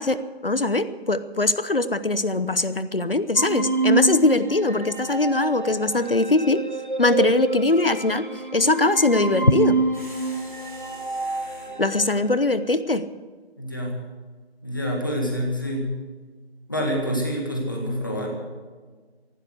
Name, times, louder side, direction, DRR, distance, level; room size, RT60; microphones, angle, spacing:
voice 1, 0.0-6.6 7.0-8.3 8.5-9.8 11.8-13.0, left 2 dB, 60° left, 13 dB, 0.9 m, -21 dB
sound 1, 3.4-12.3, right 3 dB, 50° right, 1.3 m, -28 dB
sound 2, 9.9-11.8, equal, 5° right, 2.3 m, -45 dB
voice 2, 13.6-14.0 14.6-15.9 16.7-18.3, equal, 20° left, 0 dB, 1.8 m, -27 dB
15.0 x 12.0 x 8.1 m, 1.4 s
figure-of-eight pair, 170°, 32 cm